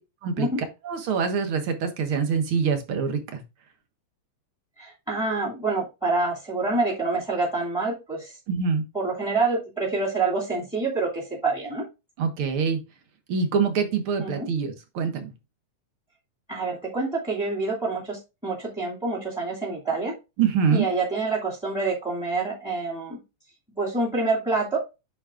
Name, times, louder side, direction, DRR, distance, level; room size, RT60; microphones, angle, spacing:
voice 1, 0.8-3.4 8.5-8.8 12.2-12.8 13.3-15.3 20.4-20.9, right 6 dB, 55° right, 7 dB, 1.9 m, -25 dB
voice 2, 4.8-8.3 8.9-11.8 14.2-14.5 16.5-20.1 20.7-23.2 23.8-24.8, right 3 dB, ahead, -2 dB, 2.1 m, -27 dB
8.9 x 6.3 x 2.4 m, 0.26 s
omnidirectional pair, 3.4 m